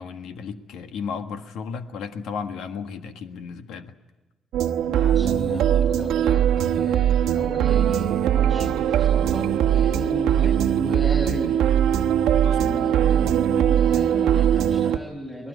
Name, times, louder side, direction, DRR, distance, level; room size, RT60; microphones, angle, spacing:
voice 1, 0.0-3.9 12.4-12.8, left 6 dB, 85° left, 7 dB, 1.7 m, -34 dB
sound 1, 4.5-15.0, right 10 dB, 90° right, 1.0 m, -20 dB
voice 2, 4.9-11.6 12.4-15.5, equal, 15° left, 0 dB, 6.3 m, -34 dB
25.5 x 18.5 x 8.4 m, 1.1 s
cardioid pair, 90°, 0 cm